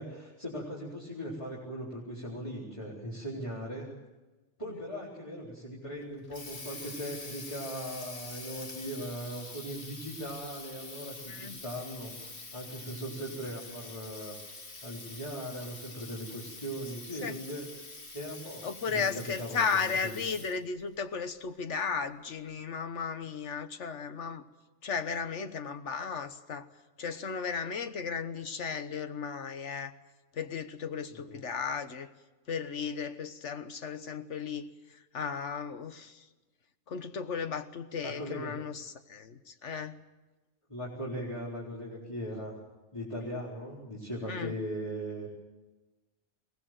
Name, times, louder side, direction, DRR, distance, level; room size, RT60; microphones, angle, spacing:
voice 1, 0.0-3.9 4.6-14.4 14.8-17.7 18.1-20.1 31.1-31.4 38.0-38.6 40.7-42.6 42.9-45.3, equal, 25° left, -5 dB, 4.3 m, -39 dB
Water tap faucet, 6.0-20.7, left 3 dB, 50° left, 2.1 m, -46 dB
voice 2, 11.3-11.6 17.2-17.4 18.6-24.4 24.8-26.7 27.0-29.9 30.3-32.1 32.5-36.2 36.9-40.0 44.3-44.5, left 6 dB, 80° left, 10 dB, 1.5 m, -35 dB
22.5 x 18.5 x 7.7 m, 1.2 s
omnidirectional pair, 1.2 m